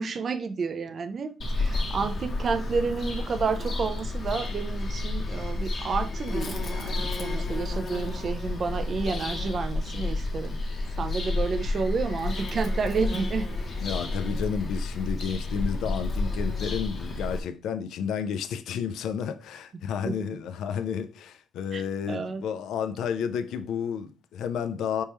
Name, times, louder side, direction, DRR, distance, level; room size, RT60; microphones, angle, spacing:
voice 1, 0.0-10.6 11.0-13.5 20.0-20.2 21.7-21.8 22.1-22.4, right 4 dB, 45° right, 0.5 m, -30 dB
Bird vocalization bird call bird song, 1.4-17.4, left 2 dB, 50° left, 0.9 m, -30 dB
voice 2, 13.8-25.0, left 7 dB, 80° left, 0.4 m, -31 dB
4.2 x 3.5 x 3.0 m
cardioid pair, 90°, 0 cm